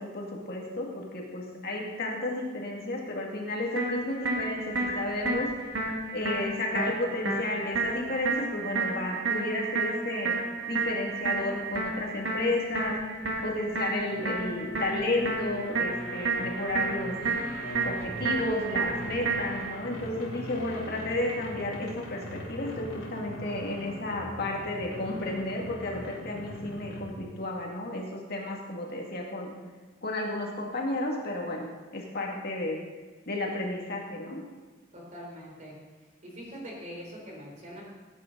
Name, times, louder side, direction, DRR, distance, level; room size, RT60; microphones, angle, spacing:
voice 1, 0.0-5.8 6.1-10.4 10.7-17.2 17.6-29.5 30.0-32.8 33.3-34.4, left 2 dB, 55° left, -1 dB, 2.1 m, -32 dB
sound 1, 3.8-19.8, right 3 dB, 80° right, 1.9 m, -31 dB
sound 2, 14.0-27.3, left 1 dB, 75° left, 3.1 m, -41 dB
voice 2, 34.9-35.8 36.2-37.8, equal, 40° right, -2 dB, 3.8 m, -43 dB
17.5 x 9.2 x 3.9 m, 1.3 s
head